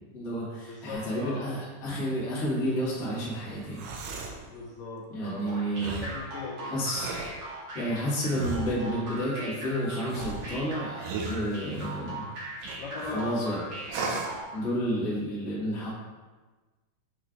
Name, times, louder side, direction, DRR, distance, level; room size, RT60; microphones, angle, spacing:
voice 1, 0.1-3.8 5.1-6.0 6.6-7.1 7.7-12.3 13.1-13.6 14.5-15.9, equal, 40° left, -8 dB, 1.2 m, -31 dB
voice 2, 0.7-1.5 4.5-5.6 5.8-6.7 12.8-13.4, left 3 dB, 80° left, -4 dB, 2.0 m, -39 dB
sound 1, 3.6-4.4 5.8-6.2 6.8-7.4 8.3-8.9 10.1-12.0 12.6-13.2 13.9-14.4, right 3 dB, 80° right, 2.1 m, -36 dB
sound 2, 5.5-14.6, right 1 dB, 50° right, 2.1 m, -40 dB
7.7 x 3.1 x 3.8 m, 1.3 s
omnidirectional pair, 4.6 m